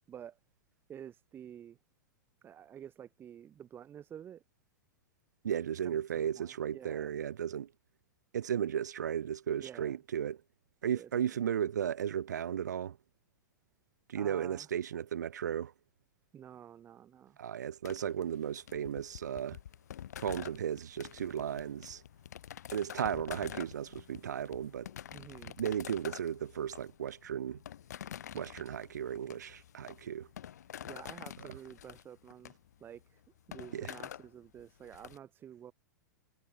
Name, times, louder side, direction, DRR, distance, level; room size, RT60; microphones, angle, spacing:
voice 1, 0.1-0.4 0.9-1.8 2.4-4.4 5.8-7.1 9.6-10.0 10.9-11.4 14.1-14.7 16.3-17.4 25.1-25.6 30.8-32.5 32.8-33.2 33.5-35.7, right 9 dB, 20° right, 1.1 m, -50 dB
voice 2, 5.4-7.7 8.3-10.4 10.8-13.0 14.1-15.7 17.4-19.6 20.2-22.0 22.7-24.9 25.4-27.6 28.3-30.3 33.7-33.9, right 9 dB, 65° right, 0.5 m, -35 dB
sound 1, 17.8-35.2, left 10 dB, 60° left, 3.6 m, -48 dB
figure-of-eight pair, 100°, 10 cm